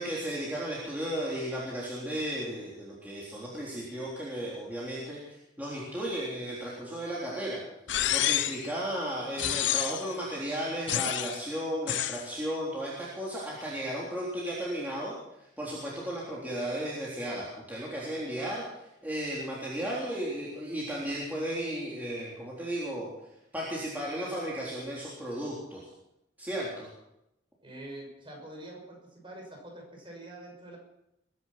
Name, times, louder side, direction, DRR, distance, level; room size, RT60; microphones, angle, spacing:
voice 1, 0.0-7.6 8.1-15.1 15.6-18.6 19.0-23.1 23.5-25.8 26.4-26.9, right 1 dB, 10° right, -7 dB, 3.7 m, -34 dB
sound 1, 7.9-8.7 9.4-10.1 10.9-11.4 11.9-12.2, left 12 dB, 80° left, 0.7 m, -29 dB
voice 2, 27.6-30.8, right 1 dB, 30° right, 0 dB, 6.0 m, -45 dB
21.5 x 10.5 x 6.0 m, 0.84 s
head